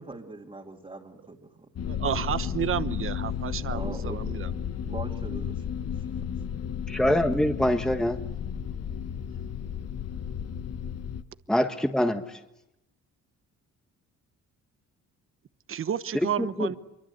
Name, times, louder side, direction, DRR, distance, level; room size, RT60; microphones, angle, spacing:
voice 1, 0.0-1.7 3.7-4.2 4.9-5.9, right 2 dB, 20° right, -2 dB, 2.6 m, -41 dB
sound 1, 1.8-11.2, left 8 dB, 55° left, 1.3 m, -33 dB
voice 2, 1.8-4.8 15.7-16.8, right 8 dB, 45° right, 13 dB, 1.1 m, -31 dB
voice 3, 6.9-8.2 11.5-12.4 16.4-16.7, left 1 dB, ahead, 6 dB, 1.5 m, -24 dB
25.0 x 23.5 x 8.2 m, 0.92 s
cardioid pair, 90°, 30 cm